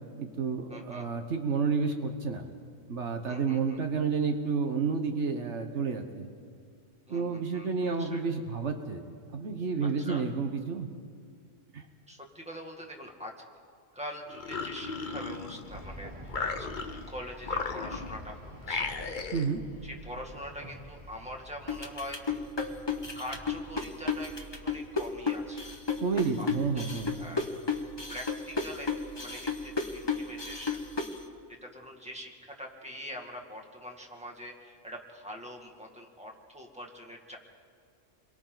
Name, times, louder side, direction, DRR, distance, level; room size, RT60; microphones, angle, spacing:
voice 1, 0.2-2.4 2.9-6.3 7.1-9.0 9.3-10.9 11.7-11.8 19.3-19.6 26.0-27.1, right 5 dB, 65° right, 5 dB, 1.4 m, -30 dB
voice 2, 0.7-1.1 3.2-3.8 7.1-8.2 9.8-10.3 12.1-13.3 13.9-18.4 18.7-18.9 19.8-22.4 23.1-25.7 26.1-26.5 26.7-27.5 28.1-28.9 29.2-30.8 31.6-37.4, equal, 5° right, 1 dB, 2.1 m, -44 dB
sound 1, 14.3-15.8 16.3-17.1 17.4-18.2 18.6-19.5, left 4 dB, 45° left, 1.0 m, -35 dB
sound 2, 15.6-31.0, right 1 dB, 30° right, 6.1 m, -49 dB
sound 3, 21.7-31.2, left 5 dB, 20° left, 1.2 m, -32 dB
29.0 x 22.5 x 4.0 m, 2.1 s
omnidirectional pair, 1.3 m